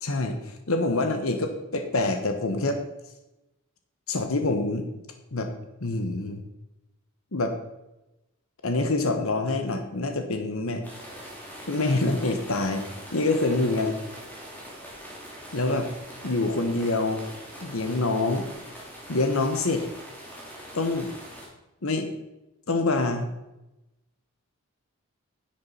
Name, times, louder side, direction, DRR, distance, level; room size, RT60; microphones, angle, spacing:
voice 1, 0.0-2.8 4.1-4.9 5.3-5.5 5.8-6.4 7.3-7.5 8.6-10.8 11.7-12.8 13.1-14.0 15.5-15.9 16.2-17.2 17.6-18.5 19.1-19.8 20.7-21.1 21.8-22.1 22.7-23.3, left 2 dB, 75° left, 6 dB, 1.2 m, -26 dB
sound 1, 10.8-21.5, equal, 10° left, 2.9 m, -42 dB
10.0 x 8.8 x 5.5 m, 0.96 s
head